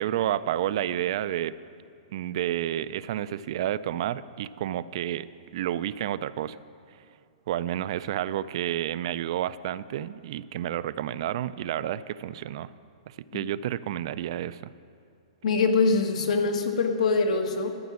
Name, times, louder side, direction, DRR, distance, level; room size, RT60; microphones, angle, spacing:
voice 1, 0.0-1.5 2.1-5.3 5.5-6.6 6.9-7.0 7.5-12.7 13.1-14.6, right 12 dB, 50° right, 15 dB, 0.3 m, -30 dB
voice 2, 15.4-17.8, left 4 dB, 75° left, 4 dB, 1.7 m, -24 dB
13.5 x 6.0 x 9.6 m, 2.4 s
hypercardioid pair, 160°, 4 cm